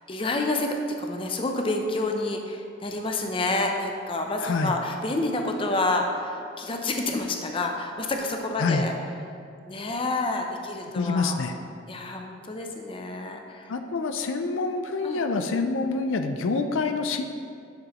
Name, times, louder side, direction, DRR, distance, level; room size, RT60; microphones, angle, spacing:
voice 1, 0.1-8.9 9.7-11.4 11.9-13.7 15.0-15.2, left 2 dB, 25° left, 3 dB, 0.5 m, -28 dB
voice 2, 4.4-4.8 8.6-8.9 10.9-11.5 13.7-17.2, left 4 dB, 75° left, 7 dB, 0.4 m, -26 dB
9.5 x 6.1 x 3.0 m, 2.4 s
head